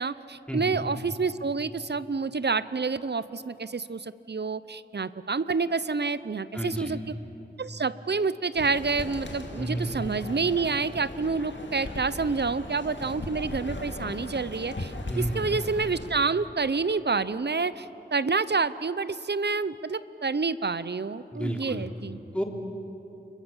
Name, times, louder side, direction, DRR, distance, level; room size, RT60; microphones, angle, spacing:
voice 1, 0.0-7.1 7.6-22.2, right 4 dB, 65° right, 16 dB, 0.7 m, -28 dB
voice 2, 6.5-6.9 9.6-10.0 15.1-15.5 21.3-21.9 22.3-22.4, equal, 5° left, 1 dB, 3.2 m, -31 dB
sound 1, 8.5-16.1, left 1 dB, 80° left, 2.2 m, -38 dB
29.0 x 22.0 x 7.3 m, 3.0 s
wide cardioid pair, 45°, 19 cm